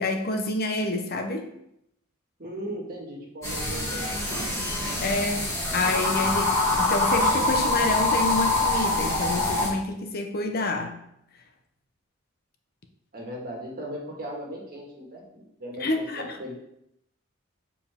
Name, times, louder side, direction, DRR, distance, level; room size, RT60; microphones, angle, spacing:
voice 1, 0.0-1.5 5.0-11.1 15.8-16.4, left 2 dB, 50° left, 5 dB, 0.7 m, -28 dB
voice 2, 2.4-4.6 13.1-16.6, equal, 45° right, -2 dB, 1.7 m, -38 dB
sound 1, 3.4-9.7, left 2 dB, 15° left, 1.9 m, -25 dB
7.3 x 4.6 x 3.6 m, 0.78 s
head